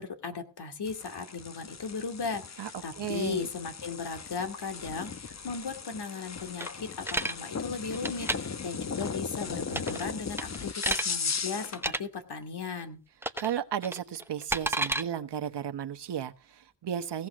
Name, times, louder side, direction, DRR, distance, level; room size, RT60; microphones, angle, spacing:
voice 1, 0.0-13.0, left 5 dB, 60° left, 2.5 m, -37 dB
sound 1, 0.8-11.8, left 5 dB, 35° left, 1.1 m, -37 dB
voice 2, 3.0-3.5 13.4-17.3, right 9 dB, 65° right, 1.2 m, -34 dB
sound 2, 6.6-7.3 7.9-8.4 9.7-10.1 10.4-11.1 11.7-12.0 13.2-13.5 13.8-15.0, right 2 dB, 5° right, 0.9 m, -31 dB
17.0 x 6.0 x 6.1 m
cardioid pair, 60°, 45 cm